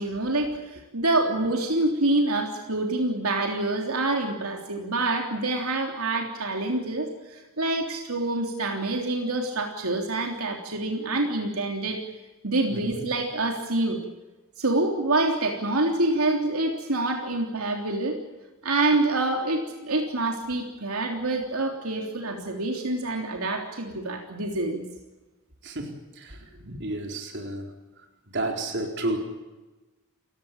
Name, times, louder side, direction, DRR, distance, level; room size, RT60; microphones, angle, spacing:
voice 1, 0.0-12.0 12.4-14.0 14.6-18.2 18.6-24.8 26.6-26.8, right 2 dB, 80° right, 2 dB, 3.4 m, -26 dB
voice 2, 25.6-26.4 26.8-27.7 28.3-29.2, right 2 dB, 55° right, 3 dB, 4.4 m, -31 dB
29.0 x 17.0 x 8.9 m, 1.1 s
head